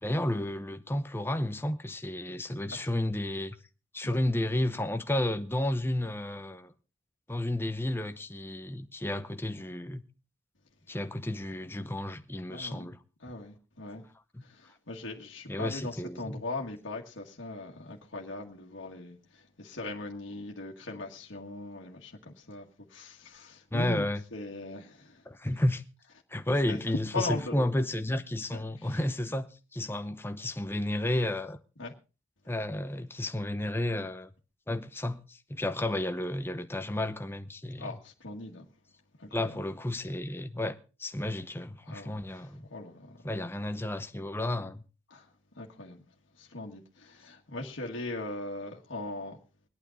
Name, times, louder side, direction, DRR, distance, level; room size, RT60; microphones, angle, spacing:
voice 1, 0.0-3.6 3.9-6.7 7.3-10.0 10.9-13.0 14.3-14.4 15.5-16.4 23.7-24.2 25.3-25.8 26.3-31.6 32.5-34.3 34.7-38.0 39.3-42.7 43.2-44.8, left 1 dB, 10° left, 0.8 m, -32 dB
voice 2, 12.5-12.9 13.2-14.0 14.4-24.1 24.3-25.2 26.7-26.8 27.1-27.6 28.5-29.0 31.8-31.9 37.8-38.7 39.2-39.5 41.8-43.3 45.1-46.1 46.4-49.4, left 2 dB, 70° left, 1.8 m, -40 dB
23.5 x 8.9 x 4.0 m
head